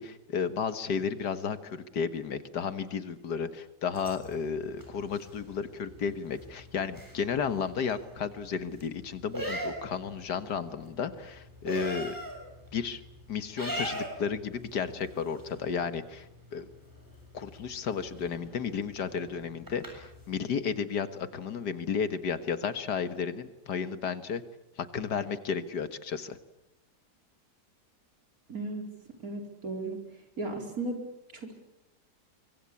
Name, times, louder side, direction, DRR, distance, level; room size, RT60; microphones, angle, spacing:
voice 1, 0.0-12.2 12.7-13.0 13.3-16.7 17.3-24.4 24.8-26.4, left 6 dB, 75° left, 11 dB, 2.0 m, -33 dB
sound 1, 3.9-20.4, equal, 10° right, 7.3 m, -43 dB
voice 2, 28.5-28.8 29.2-30.0 30.4-31.0 31.3-31.5, right 2 dB, 55° right, 3 dB, 4.8 m, -35 dB
24.5 x 24.0 x 8.5 m, 0.90 s
omnidirectional pair, 1.8 m